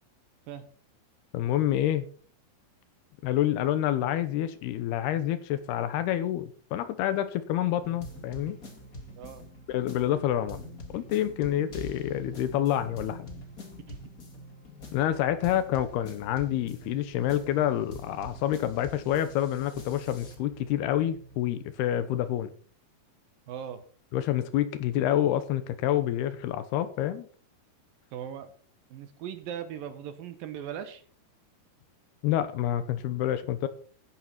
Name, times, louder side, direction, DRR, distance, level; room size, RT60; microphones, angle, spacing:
voice 1, 1.3-2.1 3.2-8.6 9.7-10.6 10.9-13.3 14.9-22.5 24.1-27.3 32.2-33.7, left 12 dB, 85° left, 12 dB, 2.9 m, -28 dB
sound 1, 7.7-21.4, equal, 25° left, 2.2 m, -45 dB
voice 2, 23.5-23.8 28.1-28.5 28.9-31.0, right 9 dB, 70° right, 10 dB, 2.5 m, -39 dB
13.5 x 11.0 x 4.3 m, 0.43 s
omnidirectional pair, 4.7 m